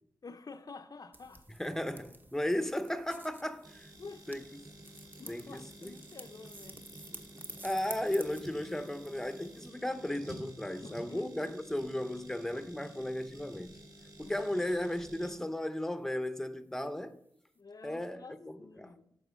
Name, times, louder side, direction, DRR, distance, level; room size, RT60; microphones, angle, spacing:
voice 1, 0.2-1.5 4.0-4.3 5.2-6.8 10.8-11.5 14.2-14.7 17.6-19.2, left 4 dB, 50° left, 0.5 m, -50 dB
sound 1, 1.1-9.7, right 2 dB, 25° right, 1.0 m, -51 dB
voice 2, 1.6-3.9 4.3-4.7 5.3-6.0 7.6-13.8 14.2-17.2 17.8-18.9, left 1 dB, 5° left, 0.7 m, -35 dB
sound 2, 3.6-15.3, right 1 dB, 50° right, 2.8 m, -51 dB
8.0 x 4.9 x 6.2 m
cardioid pair, 65°, 8 cm